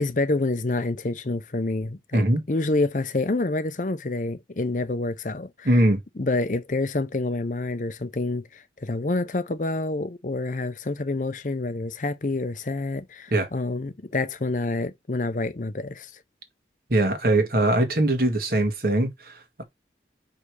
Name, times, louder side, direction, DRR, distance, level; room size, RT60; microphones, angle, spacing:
voice 1, 0.0-5.7 6.2-16.1, left 2 dB, 45° left, 0.6 m, -27 dB
voice 2, 5.6-6.0 13.3-13.5 16.9-19.6, right 1 dB, 55° right, 1.7 m, -21 dB
5.3 x 5.0 x 4.8 m
head